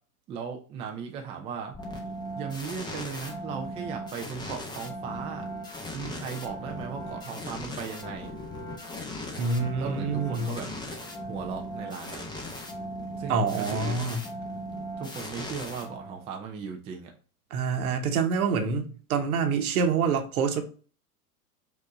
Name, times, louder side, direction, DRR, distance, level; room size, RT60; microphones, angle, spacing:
voice 1, 0.3-1.8 2.3-5.5 5.9-8.3 9.8-10.7 11.3-12.3 13.2-14.0 15.0-17.1, right 6 dB, 15° right, 0.3 m, -37 dB
sound 1, 1.7-16.4, equal, 10° left, 0.9 m, -38 dB
voice 2, 9.4-10.6 13.3-14.3 17.5-20.6, right 5 dB, 65° right, 1.0 m, -26 dB
5.0 x 2.7 x 3.6 m
figure-of-eight pair, 95°, 47 cm